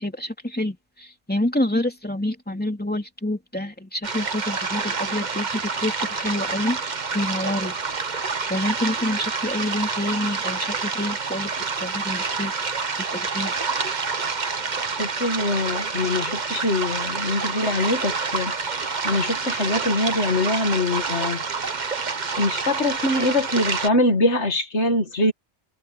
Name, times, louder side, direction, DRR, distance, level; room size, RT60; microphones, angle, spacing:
voice 1, 0.0-7.8 8.5-11.5 11.8-12.5 13.1-13.5, left 1 dB, 10° left, 3.1 m, -27 dB
sound 1, 4.0-23.9, right 4 dB, 45° right, 1.3 m, -28 dB
voice 2, 15.0-18.5 19.0-21.4 22.4-25.3, left 2 dB, 80° left, 2.3 m, -23 dB
omnidirectional pair, 1.1 m